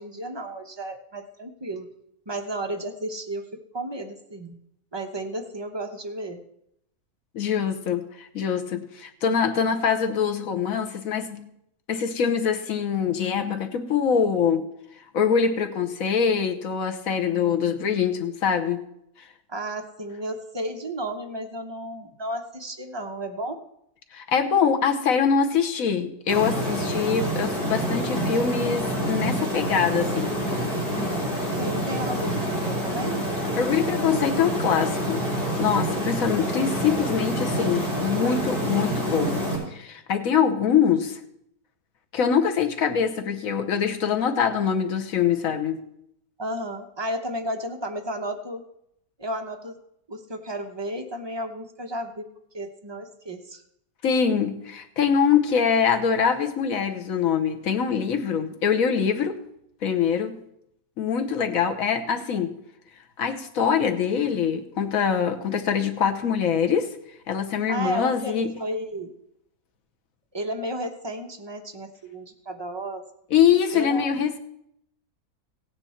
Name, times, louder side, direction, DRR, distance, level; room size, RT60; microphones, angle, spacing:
voice 1, 0.0-1.9 2.3-4.6 4.9-6.4 19.5-23.6 31.5-33.4 35.9-36.1 46.4-48.6 49.2-49.8 50.1-52.3 52.5-53.6 67.7-69.1 70.3-73.1 73.7-74.1, right 1 dB, 20° right, 4 dB, 0.7 m, -33 dB
voice 2, 7.3-11.5 11.9-14.7 15.1-18.8 24.1-30.3 33.6-35.3 35.6-41.2 42.1-45.8 54.0-59.4 59.8-60.4 61.0-62.6 63.2-67.0 67.3-68.5 73.3-74.4, left 7 dB, 65° left, 6 dB, 1.3 m, -24 dB
sound 1, 26.3-39.6, equal, 30° left, 4.0 m, -27 dB
16.0 x 9.1 x 4.3 m, 0.76 s
omnidirectional pair, 1.6 m